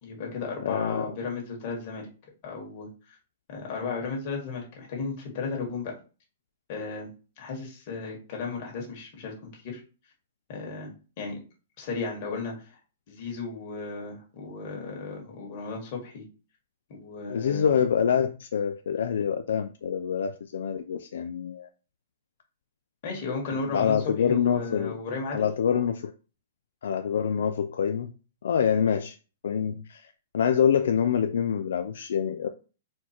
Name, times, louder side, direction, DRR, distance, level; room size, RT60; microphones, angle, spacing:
voice 1, 0.0-2.1 2.4-3.2 3.5-5.9 6.7-7.1 7.4-9.8 10.5-10.9 11.2-11.4 11.8-12.8 13.1-16.2 16.9-17.7 23.0-24.0 24.3-25.5, left 4 dB, 40° left, 1.7 m, -35 dB
voice 2, 0.6-1.1 17.3-21.7 23.5-25.0 25.3-26.1 26.8-28.1 28.4-29.2 29.4-32.5, left 7 dB, 75° left, 0.4 m, -26 dB
4.4 x 2.4 x 4.3 m
hypercardioid pair, 160°, 0 cm